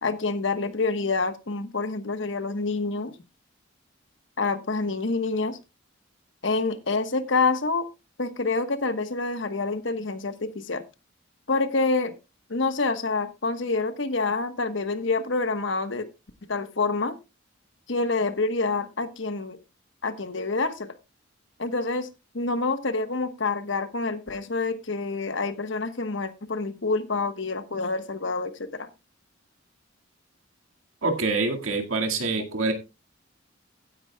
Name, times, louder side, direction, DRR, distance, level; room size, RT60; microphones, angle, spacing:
voice 1, 0.0-3.1 4.4-5.6 6.4-7.9 8.2-10.8 11.5-12.1 12.5-16.1 16.5-17.1 17.9-19.6 20.0-20.9 21.6-22.1 22.3-28.9 32.6-32.7, left 3 dB, 65° left, 10 dB, 1.2 m, -27 dB
voice 2, 31.0-32.7, right 3 dB, 85° right, 3 dB, 2.0 m, -25 dB
16.0 x 10.0 x 2.3 m, 0.26 s
head